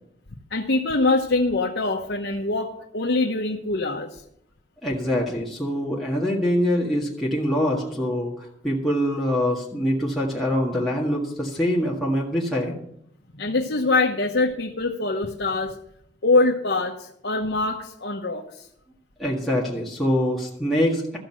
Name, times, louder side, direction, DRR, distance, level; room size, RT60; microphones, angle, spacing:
voice 1, 0.5-4.2 13.3-15.7 16.2-18.7, left 3 dB, 70° left, 0 dB, 1.0 m, -24 dB
voice 2, 4.8-12.8 19.2-21.2, equal, ahead, -6 dB, 1.8 m, -24 dB
14.0 x 6.5 x 7.6 m, 0.74 s
head